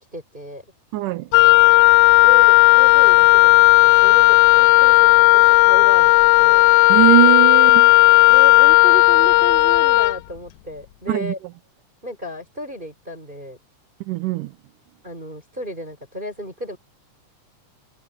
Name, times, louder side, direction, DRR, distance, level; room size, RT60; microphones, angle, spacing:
voice 1, 0.1-0.6 2.2-6.7 8.3-11.4 12.0-13.6 15.0-16.8, equal, 15° right, 5.2 m, -33 dB
voice 2, 0.9-1.3 6.9-7.9 11.1-11.3 14.0-14.6, right 16 dB, 90° right, 2.4 m, -20 dB
Wind instrument woodwind instrument, 1.3-10.2, left 25 dB, 80° left, 1.9 m, -13 dB
omnidirectional pair, 3.6 m